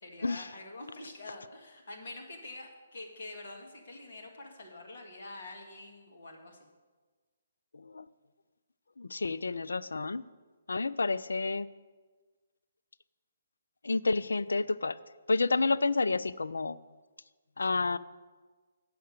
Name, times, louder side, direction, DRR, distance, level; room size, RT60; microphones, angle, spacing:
voice 1, 0.0-6.6, left 2 dB, 60° left, 1 dB, 1.9 m, -46 dB
voice 2, 7.7-8.1 9.0-10.2 10.7-11.7 13.8-15.0 15.3-16.8 17.6-18.0, left 3 dB, 75° left, 15 dB, 0.3 m, -30 dB
7.7 x 6.6 x 6.5 m, 1.4 s
figure-of-eight pair, 140°, 0 cm